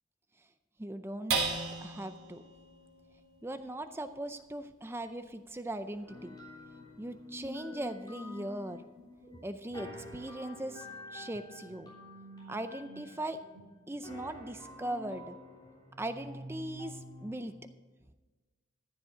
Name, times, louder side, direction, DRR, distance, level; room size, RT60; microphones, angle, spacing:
voice 1, 0.8-1.4 1.8-2.4 3.4-6.4 7.0-8.9 9.4-11.9 12.5-13.4 13.9-15.4 16.0-17.5, right 1 dB, 10° right, 10 dB, 0.4 m, -39 dB
sound 1, 1.3-8.0 8.5-8.6 9.0-9.5, right 4 dB, 75° right, 3.4 m, -40 dB
sound 2, 6.1-17.6, left 1 dB, 20° left, 3.6 m, -48 dB
14.5 x 7.4 x 5.0 m, 1.3 s
head